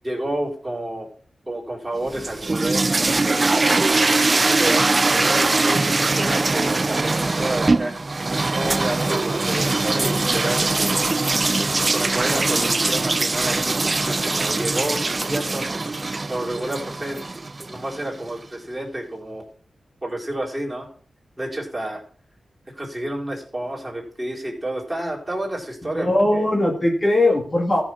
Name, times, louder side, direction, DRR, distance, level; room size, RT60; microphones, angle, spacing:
voice 1, 0.0-1.1 1.5-3.5 4.4-8.0 8.5-10.9 11.8-15.7 16.3-17.2 17.7-19.4 20.0-20.9 21.4-22.0 22.7-26.1, right 1 dB, 15° right, -2 dB, 4.2 m, -29 dB
sound 1, 2.0-18.1, right 3 dB, 35° right, 0.4 m, -22 dB
voice 2, 25.9-27.8, left 1 dB, 25° left, 1 dB, 2.3 m, -19 dB
14.0 x 6.3 x 5.9 m, 0.44 s
wide cardioid pair, 85°, 0 cm